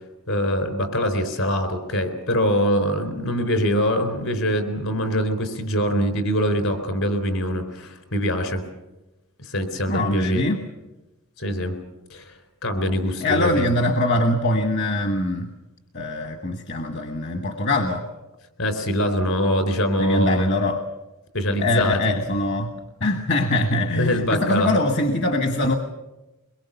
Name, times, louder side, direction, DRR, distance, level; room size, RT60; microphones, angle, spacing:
voice 1, 0.3-8.6 9.4-10.4 11.4-11.8 12.1-12.3 12.6-13.7 18.6-20.5 21.3-22.1 24.0-24.8, equal, 70° left, 8 dB, 4.0 m, -23 dB
voice 2, 9.9-10.6 13.2-15.5 15.9-18.0 20.0-20.8 21.6-22.7 23.0-25.8, left 1 dB, 50° left, 5 dB, 1.4 m, -22 dB
23.5 x 22.0 x 7.0 m, 1.0 s
head